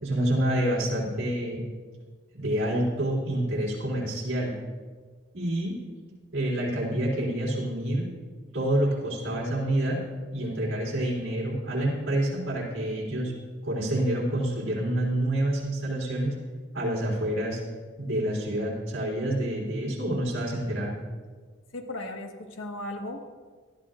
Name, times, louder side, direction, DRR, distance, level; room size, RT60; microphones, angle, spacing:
voice 1, 0.0-1.6 2.3-4.5 5.3-5.8 6.3-8.1 8.5-10.0 10.3-13.3 13.6-16.3 16.7-17.6 18.0-21.0, right 1 dB, 85° right, -5 dB, 3.6 m, -27 dB
voice 2, 21.7-23.3, left 1 dB, 85° left, 3 dB, 1.5 m, -36 dB
18.0 x 12.5 x 2.5 m, 1.5 s
head